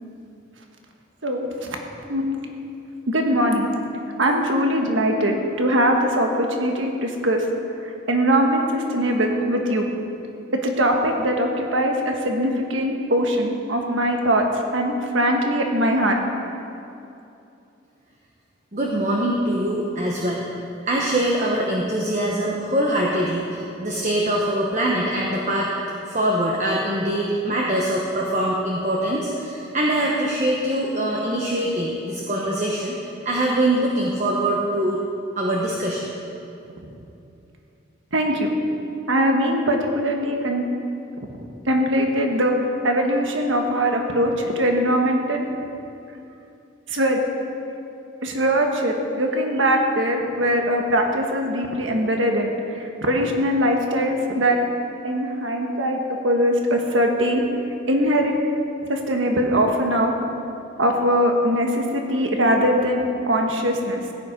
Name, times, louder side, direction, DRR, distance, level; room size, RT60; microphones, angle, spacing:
voice 1, 1.2-1.8 2.1-2.4 3.1-3.7 4.2-6.3 6.6-7.4 7.8-9.9 10.6-14.5 14.7-16.2 38.1-38.5 39.1-40.6 41.4-42.5 42.8-45.4 46.9-47.2 48.2-54.6 55.0-57.4 57.9-58.3 58.9-60.1 60.8-64.0, equal, 80° right, 2 dB, 1.5 m, -21 dB
voice 2, 18.7-20.5 20.9-25.7 26.1-33.0 33.2-35.0 35.4-36.1, right 1 dB, 35° right, -2 dB, 1.1 m, -23 dB
16.5 x 8.6 x 5.2 m, 2.7 s
head